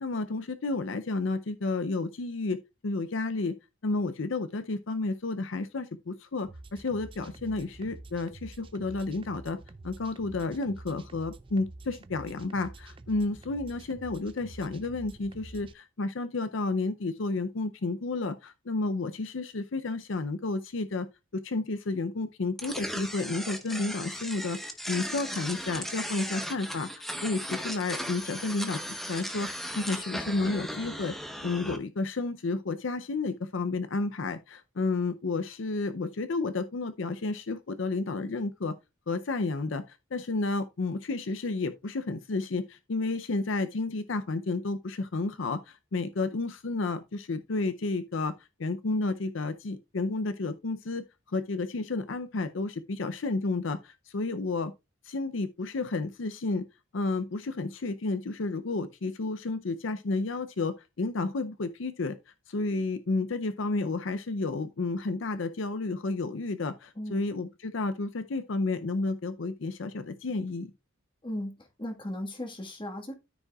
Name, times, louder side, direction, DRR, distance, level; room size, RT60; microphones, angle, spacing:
voice 1, 0.0-3.5 3.8-9.6 9.8-21.1 21.3-29.5 29.7-31.1 31.4-38.7 39.1-48.3 48.6-54.7 55.0-56.7 56.9-62.2 62.5-70.7, left 3 dB, 65° left, 0.6 m, -31 dB
sound 1, 6.4-15.7, right 2 dB, 25° right, 0.4 m, -48 dB
sound 2, 22.6-31.8, equal, ahead, 1.0 m, -37 dB
voice 2, 71.2-73.1, left 1 dB, 25° left, 1.6 m, -36 dB
13.5 x 5.4 x 2.3 m
head